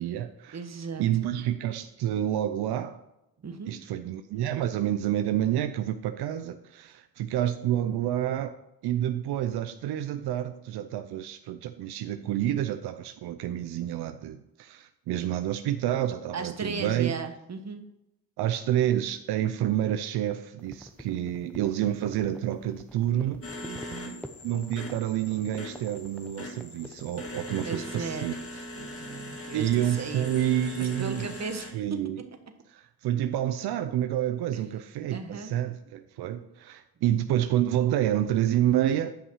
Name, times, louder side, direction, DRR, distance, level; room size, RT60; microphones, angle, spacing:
voice 1, 0.0-0.6 1.0-3.0 3.7-8.6 8.8-17.2 18.4-23.4 23.9-24.1 24.4-28.3 29.5-31.3 31.7-32.2 32.7-39.1, right 11 dB, 90° right, 9 dB, 0.6 m, -28 dB
voice 2, 0.5-1.3 3.4-3.7 16.3-17.8 23.6-24.2 27.6-28.3 28.8-30.3 30.8-32.0 34.5-34.6 35.1-35.5, right 5 dB, 45° right, 6 dB, 1.4 m, -36 dB
sound 1, 20.6-28.0, equal, 5° left, 0.9 m, -47 dB
sound 2, 23.4-31.7, left 1 dB, 35° left, 1.9 m, -41 dB
10.0 x 5.6 x 4.7 m, 0.87 s
cardioid pair, 65°, 38 cm